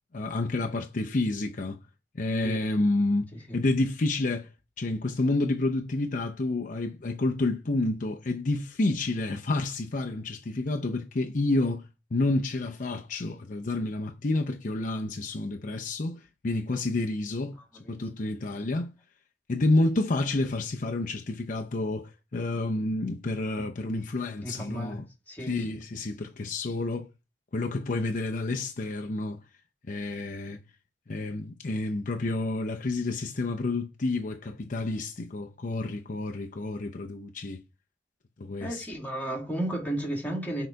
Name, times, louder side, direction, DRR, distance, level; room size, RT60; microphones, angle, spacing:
voice 1, 0.1-1.8 2.1-4.5 4.8-11.8 12.1-17.5 17.9-18.9 19.5-25.0 25.4-27.1 27.5-29.4 29.9-30.6 31.1-37.6 38.4-38.8, left 2 dB, 45° left, 0.6 m, -29 dB
voice 2, 24.4-25.0 25.3-25.8 38.6-40.7, right 1 dB, 10° left, 2.0 m, -33 dB
6.5 x 3.9 x 4.6 m
head